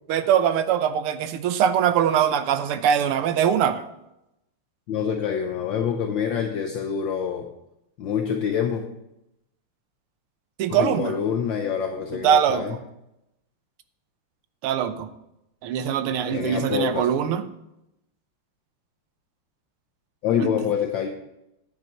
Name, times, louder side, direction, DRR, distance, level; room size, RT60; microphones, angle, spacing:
voice 1, 0.1-3.8 10.6-11.1 12.1-12.8 14.6-15.1 15.6-17.4 20.4-20.5, right 9 dB, 80° right, 10 dB, 1.7 m, -22 dB
voice 2, 4.9-7.5 8.0-8.8 10.7-12.8 14.9-15.0 16.3-17.1 20.2-21.1, left 8 dB, 65° left, 4 dB, 1.4 m, -26 dB
10.0 x 9.0 x 4.5 m, 0.86 s
omnidirectional pair, 2.4 m